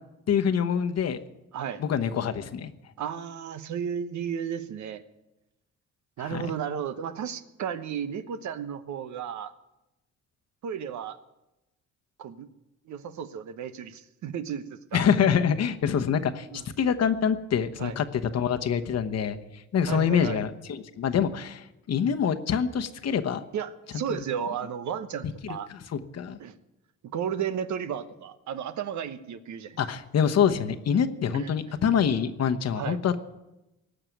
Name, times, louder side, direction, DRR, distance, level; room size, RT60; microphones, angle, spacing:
voice 1, 0.3-1.2 1.8-2.7 6.2-6.5 14.9-19.4 19.7-23.4 24.1-24.2 25.2-26.4 29.8-33.2, left 7 dB, 55° left, 8 dB, 1.1 m, -26 dB
voice 2, 3.0-5.0 6.2-9.5 10.6-11.2 12.2-12.5 12.9-15.0 16.5-16.6 17.8-18.0 19.9-20.4 23.5-25.7 26.4-26.5 27.1-29.8 31.3-31.5 32.7-33.0, right 8 dB, 70° right, 11 dB, 1.1 m, -33 dB
18.0 x 6.8 x 9.1 m, 0.96 s
cardioid pair, 90°, 30 cm